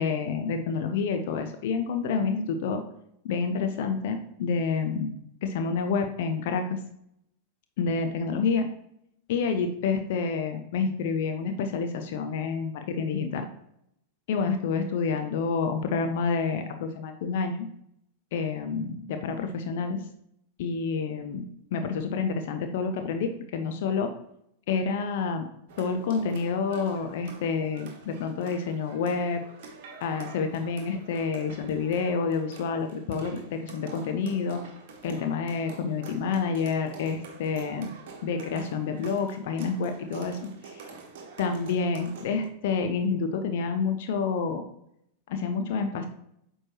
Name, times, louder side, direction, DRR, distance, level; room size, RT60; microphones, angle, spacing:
voice 1, 0.0-2.8 3.2-5.1 5.4-6.8 7.8-8.7 9.3-13.4 14.3-17.7 18.3-20.0 20.6-24.1 24.7-25.5 25.8-29.4 30.0-34.6 35.0-37.9 38.2-40.4 40.6-40.8 41.4-44.6 45.3-46.1, left 5 dB, 55° left, 6 dB, 0.6 m, -28 dB
sound 1, 25.7-42.5, right 4 dB, 50° right, 1.2 m, -46 dB
8.6 x 4.5 x 3.0 m, 0.75 s
figure-of-eight pair, 90°, 0 cm